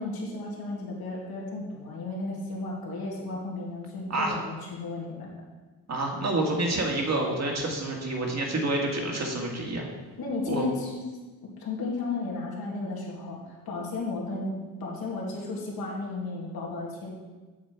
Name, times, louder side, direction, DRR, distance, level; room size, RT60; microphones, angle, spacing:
voice 1, 0.0-5.3 10.2-11.0 11.6-14.5 14.8-17.1, left 3 dB, 65° left, -4 dB, 2.3 m, -34 dB
voice 2, 5.9-9.9 10.5-10.6, right 2 dB, 40° right, -1 dB, 2.1 m, -28 dB
7.5 x 7.4 x 4.5 m, 1.3 s
cardioid pair, 90°, 39 cm